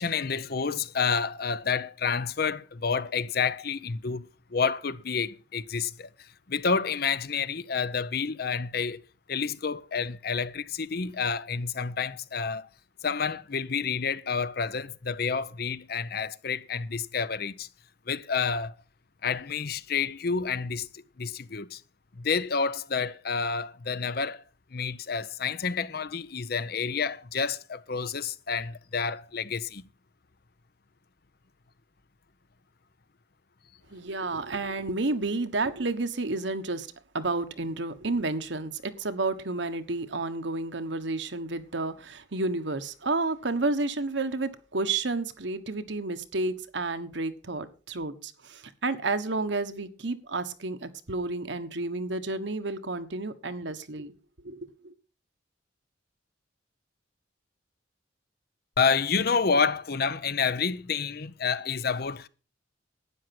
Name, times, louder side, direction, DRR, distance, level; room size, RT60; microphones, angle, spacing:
voice 1, 0.0-6.1 6.5-9.0 9.3-12.7 13.0-17.7 18.1-18.7 19.2-21.8 22.2-24.4 24.7-29.9 58.8-62.3, left 5 dB, 55° left, 0.7 m, -29 dB
voice 2, 33.9-36.9 37.1-54.1 54.4-54.9, right 3 dB, 70° right, 1.3 m, -31 dB
12.5 x 9.6 x 6.0 m
head